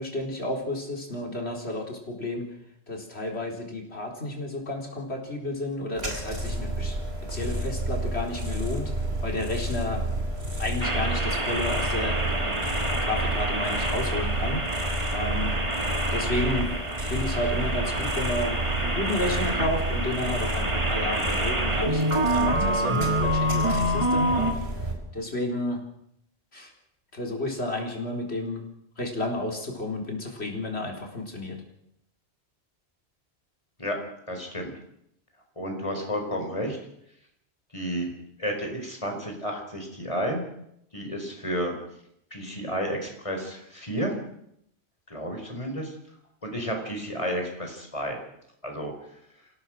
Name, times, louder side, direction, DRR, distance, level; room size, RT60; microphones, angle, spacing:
voice 1, 0.0-2.5 2.9-7.0 7.3-8.9 9.2-10.0 10.6-12.6 13.0-14.6 15.1-15.6 16.1-16.7 17.1-24.7 25.1-25.8 26.5-26.7 27.1-28.6 29.0-31.6, left 1 dB, 80° left, 1 dB, 4.4 m, -31 dB
sound 1, 5.9-24.9, right 1 dB, 70° right, 4.5 m, -31 dB
sound 2, 10.8-24.5, right 1 dB, 30° right, 2.0 m, -27 dB
voice 2, 34.3-34.7 35.6-36.8 37.7-38.1 38.4-40.4 40.9-41.7 42.3-44.2 45.1-45.9 46.4-48.2 48.6-48.9, equal, 30° left, 3 dB, 4.8 m, -31 dB
26.5 x 17.0 x 6.4 m, 0.74 s
omnidirectional pair, 1.1 m